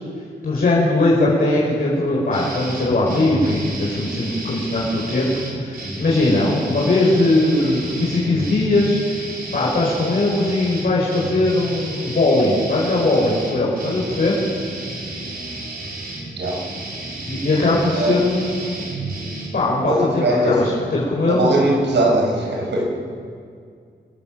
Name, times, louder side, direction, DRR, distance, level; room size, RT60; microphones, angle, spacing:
voice 1, 0.4-5.3 5.6-9.0 9.5-14.4 17.3-18.9 19.5-21.5, left 2 dB, 55° left, -6 dB, 5.2 m, -19 dB
sound 1, 2.3-19.5, right 2 dB, 60° right, 4.8 m, -32 dB
voice 2, 19.9-20.8 21.3-22.8, right 1 dB, 80° right, -1 dB, 6.0 m, -20 dB
27.0 x 16.5 x 7.6 m, 2.2 s
wide cardioid pair, 135°, 18 cm